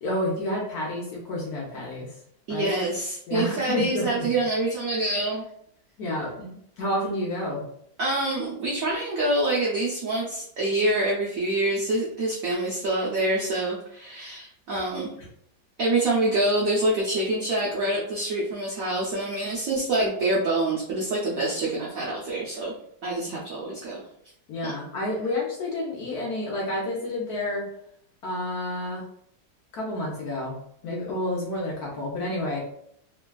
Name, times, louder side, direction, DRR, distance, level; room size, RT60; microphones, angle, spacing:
voice 1, 0.0-2.2 2.5-2.7 3.3-4.3 6.0-7.7 23.3-23.4 24.5-27.7 28.2-29.0 29.7-30.6 30.8-32.6, left 1 dB, 65° left, -3 dB, 1.0 m, -29 dB
voice 2, 2.5-5.5 8.0-15.1 15.8-22.7 23.0-24.0 24.6-24.7, right 2 dB, 90° right, -5 dB, 0.7 m, -26 dB
3.2 x 2.2 x 2.2 m, 0.70 s
omnidirectional pair, 2.1 m